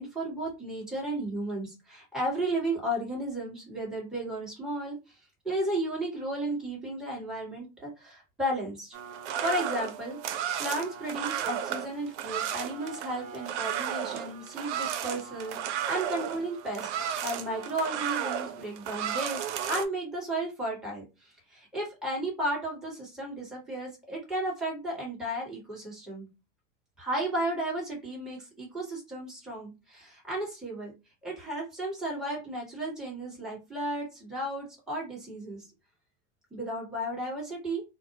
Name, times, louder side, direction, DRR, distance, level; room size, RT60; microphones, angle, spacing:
voice 1, 0.0-5.2 5.4-9.0 9.4-10.2 10.6-19.4 19.7-26.3 27.0-30.9 31.2-35.7 36.5-37.8, right 1 dB, ahead, -4 dB, 1.3 m, -34 dB
sound 1, 8.9-19.8, right 9 dB, 75° right, 0.5 m, -34 dB
2.6 x 2.1 x 2.8 m, 0.27 s
hypercardioid pair, 100°, 36 cm